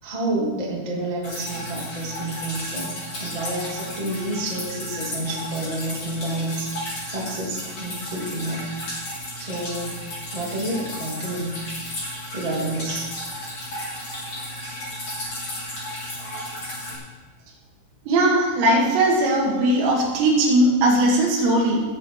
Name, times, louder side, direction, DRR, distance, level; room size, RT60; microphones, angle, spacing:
voice 1, 0.0-8.7 9.4-10.0 10.3-11.6 12.3-13.1, right 1 dB, 30° right, -4 dB, 0.6 m, -29 dB
Drip, 1.2-17.0, left 1 dB, 30° left, 4.6 m, -34 dB
voice 2, 18.1-21.8, right 1 dB, 90° right, -2 dB, 4.9 m, -19 dB
17.0 x 7.5 x 4.7 m, 1.3 s
omnidirectional pair, 5.9 m